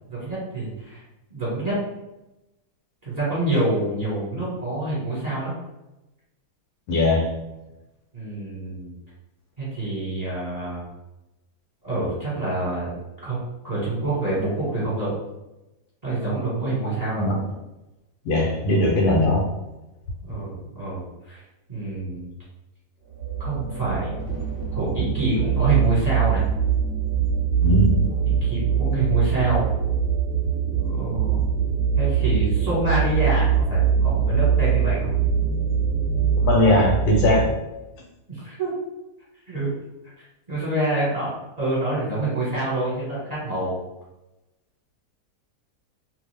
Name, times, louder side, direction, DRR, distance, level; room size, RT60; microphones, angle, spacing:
voice 1, 0.1-1.0 1.3-1.7 3.0-5.5 8.1-8.9 9.6-10.8 11.8-12.9 13.2-15.2 16.0-17.3 20.3-21.4 21.7-22.3 23.4-24.2 24.7-26.4 28.1-29.7 30.8-31.5 32.0-35.1 38.3-38.7 39.5-39.7 40.5-43.8, right 2 dB, 25° right, -8 dB, 1.2 m, -26 dB
voice 2, 6.9-7.4 17.2-17.4 18.2-19.5 27.6-28.1 36.4-37.5, left 1 dB, 75° left, -1 dB, 1.2 m, -19 dB
sound 1, 23.1-37.5, right 7 dB, 45° right, 0.9 m, -23 dB
2.7 x 2.4 x 3.3 m, 0.98 s
omnidirectional pair, 1.7 m